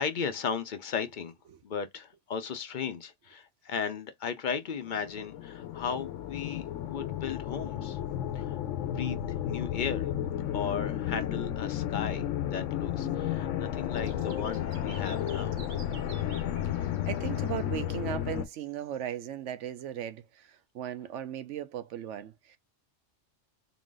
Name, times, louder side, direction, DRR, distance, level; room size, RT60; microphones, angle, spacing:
voice 1, 0.0-1.3 1.6-8.0 8.3-8.6 8.8-9.2 9.4-10.1 10.5-12.2 12.5-15.5, left 6 dB, 50° left, 0.6 m, -35 dB
sound 1, 4.9-18.4, left 11 dB, 85° left, 1.0 m, -33 dB
sound 2, 13.9-17.9 18.4-19.1, right 6 dB, 50° right, 0.7 m, -53 dB
voice 2, 16.6-22.6, right 10 dB, 80° right, 0.9 m, -37 dB
3.9 x 2.5 x 3.7 m
omnidirectional pair, 1.3 m